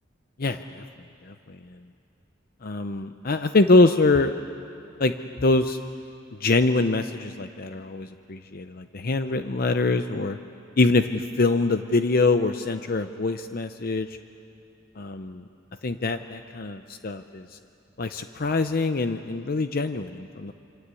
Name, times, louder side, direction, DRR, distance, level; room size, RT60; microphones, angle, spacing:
voice 1, 0.4-0.8 2.6-4.3 5.0-5.1 5.4-5.8 6.4-10.4 10.8-14.1 15.0-15.4 15.8-17.4 18.0-20.5, left 3 dB, 50° left, 9 dB, 0.7 m, -24 dB
26.5 x 26.0 x 8.4 m, 2.7 s
head